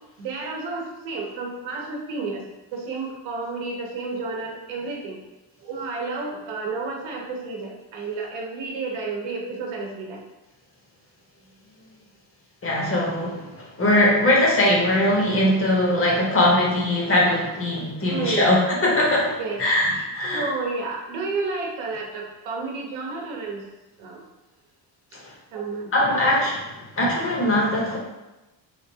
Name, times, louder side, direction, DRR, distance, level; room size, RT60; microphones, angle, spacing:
voice 1, 0.2-2.4 2.7-5.2 5.6-10.2 18.1-18.5 19.4-19.6 19.9-20.0 20.3-23.6 24.0-24.2 25.5-25.9, right 4 dB, 90° right, -1 dB, 0.8 m, -31 dB
voice 2, 12.6-20.5 25.1-25.2 25.9-28.0, left 1 dB, 30° left, -3 dB, 0.7 m, -21 dB
3.3 x 2.3 x 2.7 m, 1.0 s
cardioid pair, 125°, 45 cm